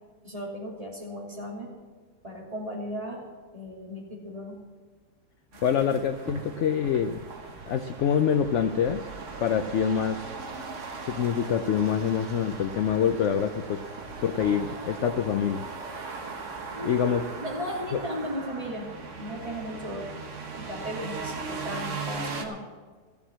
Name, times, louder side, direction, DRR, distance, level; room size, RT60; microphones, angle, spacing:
voice 1, 0.2-1.7 2.2-3.2 3.5-4.6 16.7-20.1 20.6-22.6, equal, 20° right, -3 dB, 2.9 m, -36 dB
sound 1, 5.5-22.5, right 4 dB, 50° right, 1.5 m, -39 dB
voice 2, 5.6-7.2 7.7-9.1 9.4-10.4 11.1-13.8 14.2-15.7 16.8-17.2 17.9-18.0, left 8 dB, 75° left, 9 dB, 0.7 m, -25 dB
14.5 x 7.2 x 7.4 m, 1.4 s
omnidirectional pair, 1.8 m